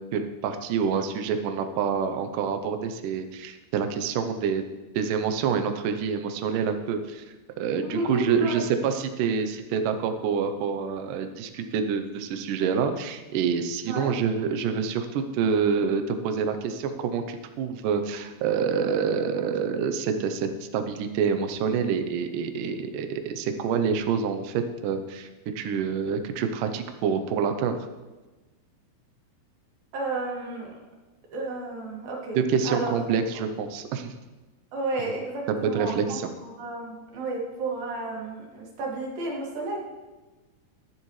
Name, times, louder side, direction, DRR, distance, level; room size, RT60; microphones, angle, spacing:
voice 1, 0.1-4.7 5.0-7.2 7.6-25.3 25.6-27.8 32.4-34.1 35.5-36.3, right 6 dB, 90° right, 7 dB, 1.8 m, -27 dB
voice 2, 7.8-8.6 13.9-14.1 29.9-30.8 31.3-32.4 32.6-32.9 34.7-39.8, right 2 dB, 60° right, -2 dB, 3.7 m, -32 dB
22.0 x 7.4 x 3.2 m, 1.2 s
omnidirectional pair, 4.9 m